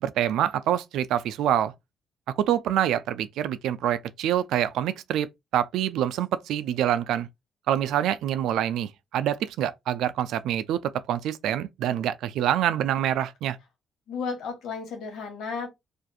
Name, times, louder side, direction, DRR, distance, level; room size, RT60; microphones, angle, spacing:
voice 1, 0.0-1.7 2.4-7.3 7.7-13.6, right 11 dB, 85° right, 0.3 m, -26 dB
voice 2, 14.1-15.7, left 5 dB, 80° left, 1.1 m, -33 dB
2.5 x 2.3 x 2.6 m
cardioid pair, 90°, 0 cm